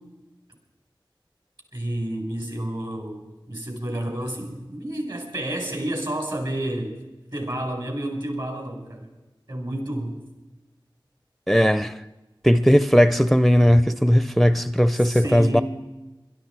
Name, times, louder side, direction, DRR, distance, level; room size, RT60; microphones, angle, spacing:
voice 1, 1.7-7.0 7.3-9.1 9.5-10.1 15.0-15.6, right 1 dB, 60° right, 4.8 m, -30 dB
voice 2, 11.5-12.0 12.4-15.6, equal, ahead, 0.5 m, -17 dB
22.0 x 12.0 x 4.6 m
wide cardioid pair, 45°, 9 cm